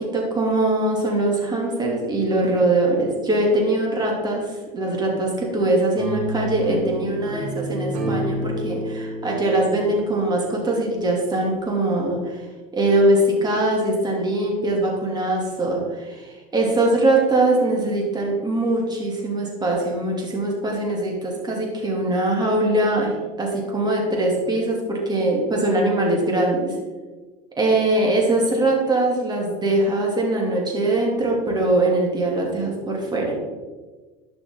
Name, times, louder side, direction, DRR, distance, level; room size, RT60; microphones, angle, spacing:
voice 1, 0.0-12.4 12.7-26.7 27.6-33.4, right 2 dB, 20° right, -1 dB, 3.0 m, -22 dB
sound 1, 6.0-11.1, right 1 dB, 85° right, 2.4 m, -30 dB
11.5 x 6.0 x 4.0 m, 1.3 s
supercardioid pair, 95°, 19 cm